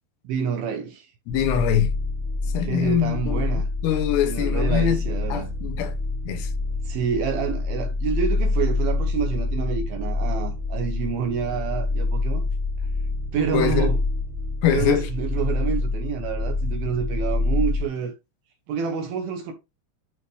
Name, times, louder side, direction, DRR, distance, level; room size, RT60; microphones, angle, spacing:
voice 1, 0.2-1.1 2.6-3.7 4.2-5.6 6.8-12.4 13.3-14.0 14.7-18.1 18.7-19.5, right 6 dB, 75° right, 2.2 m, -28 dB
voice 2, 1.3-1.9 2.5-3.5 3.8-5.1 5.3-5.9 6.2-6.5 13.5-13.9 14.6-15.1, left 10 dB, 75° left, 2.8 m, -23 dB
sound 1, 1.3-17.8, left 2 dB, 35° right, 2.1 m, -26 dB
11.0 x 3.8 x 3.3 m
omnidirectional pair, 5.4 m